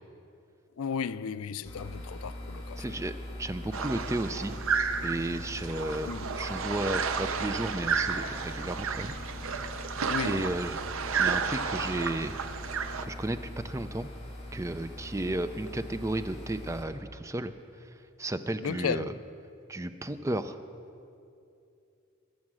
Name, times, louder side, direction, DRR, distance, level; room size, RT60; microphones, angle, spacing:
voice 1, 0.8-3.0 6.0-6.3 10.1-10.5 18.6-19.1, left 6 dB, 75° left, 0.4 m, -34 dB
sound 1, 1.6-16.8, left 1 dB, 25° left, 2.0 m, -42 dB
voice 2, 2.8-3.1 3.4-4.6 5.0-6.1 6.4-9.1 10.2-10.8 11.2-12.4 13.0-14.1 14.5-19.1 19.7-20.6, right 1 dB, 15° right, 0.4 m, -33 dB
sound 2, 3.7-13.0, right 6 dB, 70° right, 0.7 m, -32 dB
21.0 x 7.4 x 6.2 m
head